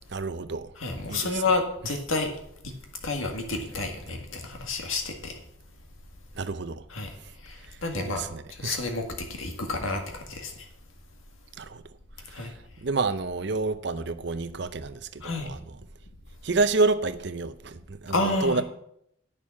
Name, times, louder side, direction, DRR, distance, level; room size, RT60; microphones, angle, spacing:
voice 1, 0.1-0.7 1.1-1.4 6.4-6.8 7.9-8.8 11.6-11.8 12.8-15.6 16.4-18.6, right 3 dB, 55° right, 0.6 m, -28 dB
voice 2, 0.8-2.3 2.6-2.7 3.0-5.4 6.9-7.1 7.4-8.2 8.6-10.5 12.3-12.5 15.2-15.5 18.1-18.6, left 3 dB, 80° left, 1.8 m, -30 dB
8.9 x 6.7 x 7.2 m
head